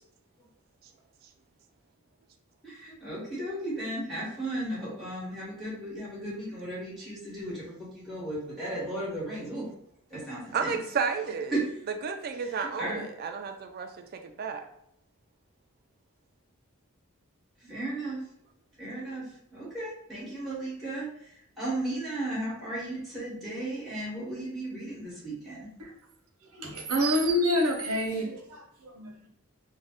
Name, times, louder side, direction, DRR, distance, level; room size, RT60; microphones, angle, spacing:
voice 1, 2.6-9.7 10.1-10.8 11.5-11.7 12.4-13.0 17.6-18.2 18.8-19.2 19.5-25.7, right 1 dB, ahead, -8 dB, 1.0 m, -35 dB
voice 2, 10.5-11.5 12.0-14.6, right 5 dB, 45° right, 5 dB, 0.3 m, -32 dB
voice 3, 26.6-29.1, equal, 85° right, 1 dB, 0.7 m, -27 dB
2.5 x 2.0 x 3.4 m, 0.75 s
head